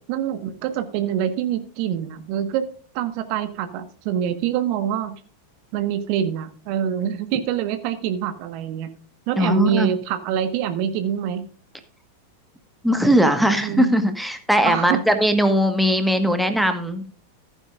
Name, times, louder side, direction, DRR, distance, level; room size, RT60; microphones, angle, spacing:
voice 1, 0.1-2.7 2.9-5.2 5.7-8.9 9.3-11.5 13.6-13.9 14.6-15.0, right 9 dB, 45° right, 10 dB, 1.4 m, -25 dB
voice 2, 9.4-9.9 12.8-17.1, equal, ahead, 7 dB, 1.4 m, -19 dB
15.0 x 9.8 x 2.5 m, 0.43 s
figure-of-eight pair, 90°, 0 cm